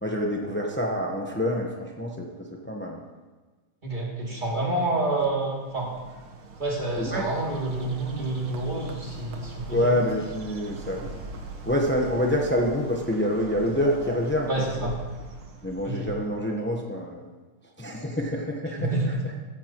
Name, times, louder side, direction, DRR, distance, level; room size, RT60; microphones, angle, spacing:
voice 1, 0.0-3.0 7.0-7.2 9.7-11.1 11.6-14.9 15.6-17.2 17.8-18.9, equal, 15° left, 0 dB, 0.4 m, -27 dB
voice 2, 3.8-5.9 6.6-9.9 14.5-14.9 15.8-16.1 18.8-19.2, right 2 dB, 20° right, -4 dB, 2.8 m, -28 dB
Bird, 5.2-16.6, right 3 dB, 75° right, 2.2 m, -41 dB
14.5 x 14.5 x 3.0 m, 1.3 s
omnidirectional pair, 2.3 m